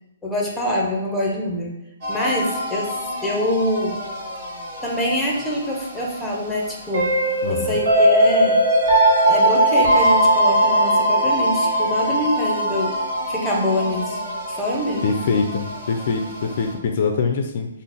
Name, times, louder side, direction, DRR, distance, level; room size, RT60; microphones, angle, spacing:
voice 1, 0.2-1.8 2.1-4.0 4.8-7.1 7.5-8.6 9.2-13.0 13.3-14.2 14.5-15.2, left 1 dB, ahead, -2 dB, 0.6 m, -25 dB
sound 1, 2.0-16.7, right 1 dB, 45° right, 1.5 m, -21 dB
voice 2, 7.4-7.8 15.0-17.7, left 5 dB, 45° left, 4 dB, 0.4 m, -23 dB
3.8 x 2.0 x 3.9 m, 0.94 s
hypercardioid pair, 160°, 0 cm